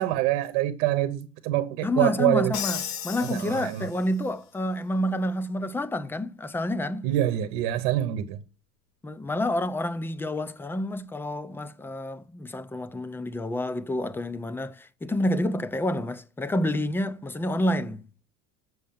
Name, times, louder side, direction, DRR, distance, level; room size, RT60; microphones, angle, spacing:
voice 1, 0.0-2.5 3.3-3.9 7.0-8.4, right 14 dB, 80° right, 1.0 m, -25 dB
voice 2, 1.8-7.1 9.0-18.0, left 1 dB, 5° left, 0.4 m, -29 dB
Crash cymbal, 2.5-4.3, left 9 dB, 85° left, 1.1 m, -35 dB
7.5 x 6.4 x 7.0 m
cardioid pair, 135°, 36 cm